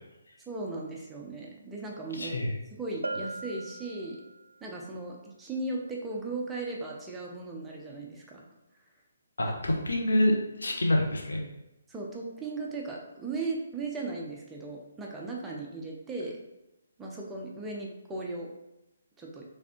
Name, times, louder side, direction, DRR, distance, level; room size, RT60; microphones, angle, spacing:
voice 1, 0.5-2.4 2.7-4.2 4.6-8.4 9.5-9.6 11.9-16.4 17.0-18.5 19.2-19.4, right 3 dB, 10° right, -2 dB, 0.6 m, -37 dB
voice 2, 2.2-2.5 9.4-11.4, left 1 dB, 75° left, 1 dB, 0.8 m, -26 dB
Bell, 3.0-4.6, right 2 dB, 90° right, 0.3 m, -38 dB
4.0 x 3.4 x 2.9 m, 0.93 s
figure-of-eight pair, 145°, 0 cm